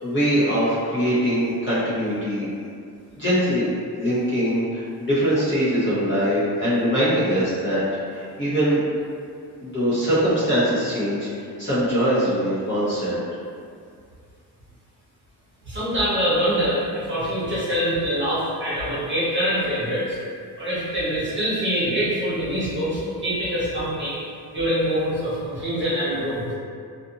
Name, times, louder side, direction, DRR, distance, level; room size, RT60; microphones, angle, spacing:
voice 1, 0.0-2.5 3.2-3.7 4.0-7.8 8.1-8.8 9.6-11.3 11.6-13.2, equal, 30° left, -11 dB, 0.8 m, -22 dB
voice 2, 15.6-20.2 20.6-24.2 24.5-26.4, equal, 30° right, -10 dB, 1.0 m, -24 dB
2.5 x 2.5 x 2.6 m, 2.3 s
wide cardioid pair, 145°, 40 cm